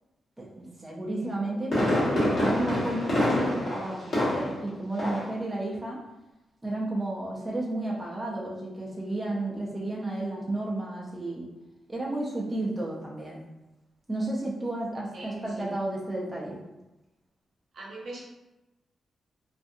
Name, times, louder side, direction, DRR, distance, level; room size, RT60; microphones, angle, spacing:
voice 1, 0.4-6.0 6.6-11.5 11.9-13.4 14.1-16.6, right 2 dB, 10° right, -4 dB, 0.4 m, -32 dB
Fireworks, 1.2-4.7 5.0-5.4 5.7-5.8, left 1 dB, 45° left, 1.1 m, -26 dB
voice 2, 15.1-15.7 17.7-18.2, right 2 dB, 65° right, -3 dB, 0.7 m, -41 dB
2.5 x 2.4 x 2.6 m, 1.0 s
wide cardioid pair, 145°, 0 cm